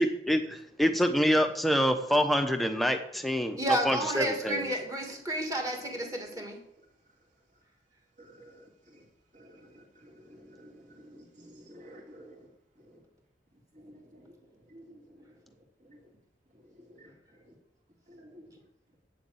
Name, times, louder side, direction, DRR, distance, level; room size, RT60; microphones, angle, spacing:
voice 1, 0.0-4.7, equal, ahead, 6 dB, 0.9 m, -26 dB
voice 2, 3.6-6.6, right 1 dB, 20° right, 2 dB, 2.2 m, -31 dB
voice 3, 8.2-8.6 9.3-12.4 13.8-14.2 14.7-15.0 17.0-17.1 18.1-18.4, equal, 45° right, -1 dB, 2.8 m, -52 dB
8.5 x 7.3 x 8.6 m, 0.74 s
head